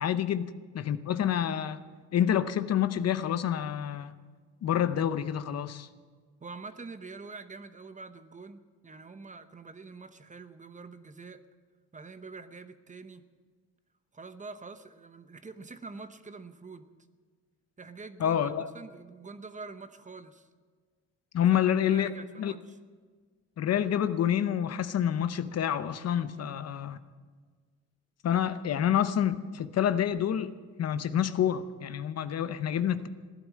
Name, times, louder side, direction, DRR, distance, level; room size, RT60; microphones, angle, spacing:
voice 1, 0.0-1.8 2.1-4.1 4.6-5.9 18.2-18.7 21.3-22.1 22.4-22.5 23.6-27.0 28.2-30.5 30.8-33.1, left 9 dB, 55° left, 12 dB, 0.8 m, -28 dB
voice 2, 6.4-11.4 11.9-13.3 14.1-16.9 17.8-20.5 21.5-22.8 26.4-26.6, right 4 dB, 25° right, 10 dB, 0.9 m, -46 dB
16.5 x 11.0 x 7.5 m, 1.5 s
cardioid pair, 90°, 30 cm